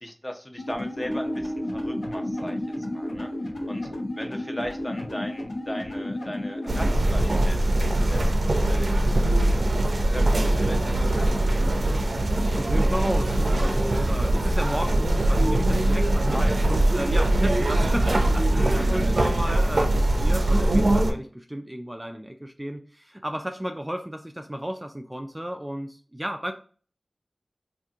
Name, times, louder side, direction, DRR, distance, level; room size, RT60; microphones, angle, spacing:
voice 1, 0.0-2.6 2.9-3.3 3.7-3.9 4.2-9.7 10.1-11.6 16.3-16.6 18.8-19.2 19.5-19.6, left 1 dB, 25° left, 4 dB, 0.6 m, -38 dB
sound 1, 0.6-6.9, left 1 dB, 85° left, 0.8 m, -33 dB
Piano, 1.1-7.8, equal, ahead, 1.2 m, -38 dB
sound 2, 6.7-21.1, right 1 dB, 70° right, 0.5 m, -22 dB
voice 2, 12.3-16.4 16.7-26.5, equal, 15° right, 4 dB, 0.3 m, -33 dB
2.8 x 2.5 x 3.5 m, 0.42 s
wide cardioid pair, 45°, 0 cm